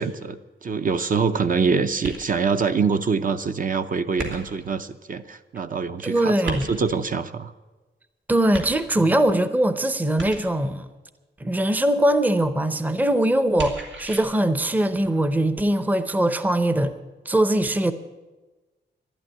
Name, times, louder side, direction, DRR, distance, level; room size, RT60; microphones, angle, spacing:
voice 1, 0.0-7.5, right 5 dB, 45° right, 0.6 m, -25 dB
sound 1, 2.0-2.6 4.2-4.8 6.4-7.1 8.5-9.2 10.2-10.7 13.6-14.2, right 2 dB, 90° right, 2.8 m, -35 dB
voice 2, 6.0-6.7 8.3-10.9 11.4-16.9 17.3-17.9, right 1 dB, 10° right, 0.6 m, -21 dB
12.0 x 11.5 x 9.9 m
wide cardioid pair, 175°, 19 cm